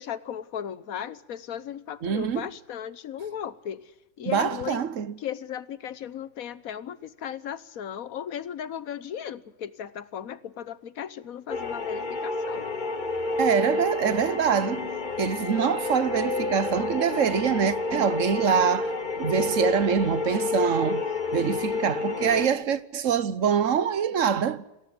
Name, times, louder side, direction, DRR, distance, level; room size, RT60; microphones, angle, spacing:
voice 1, 0.0-3.8 4.2-4.8 5.2-12.7, left 9 dB, 85° left, 1.4 m, -36 dB
voice 2, 2.0-2.5 4.2-5.1 13.4-14.9 15.2-21.0 21.3-24.6, right 7 dB, 65° right, 1.3 m, -25 dB
sound 1, 11.5-22.5, left 3 dB, 35° left, 1.5 m, -29 dB
27.5 x 14.0 x 8.7 m
omnidirectional pair, 1.5 m